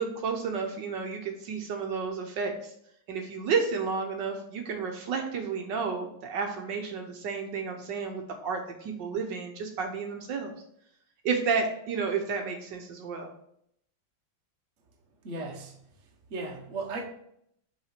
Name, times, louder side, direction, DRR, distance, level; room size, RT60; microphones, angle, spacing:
voice 1, 0.0-2.7 3.1-10.5 11.2-13.3, right 5 dB, 70° right, 3 dB, 1.5 m, -31 dB
voice 2, 15.2-15.8 16.3-17.0, right 3 dB, 45° right, 1 dB, 1.3 m, -36 dB
5.8 x 5.0 x 5.8 m, 0.72 s
omnidirectional pair, 2.1 m